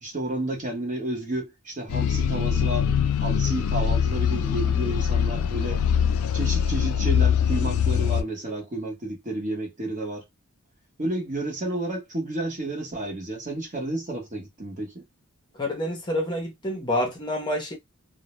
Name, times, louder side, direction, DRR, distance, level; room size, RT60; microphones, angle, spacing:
voice 1, 0.0-2.9 3.2-5.8 6.3-10.2 11.0-15.0, right 1 dB, 35° right, 0.8 m, -31 dB
sound 1, 1.9-8.2, left 8 dB, 65° left, 0.3 m, -23 dB
voice 2, 15.6-17.7, left 1 dB, 20° left, 0.6 m, -28 dB
2.0 x 2.0 x 2.9 m
head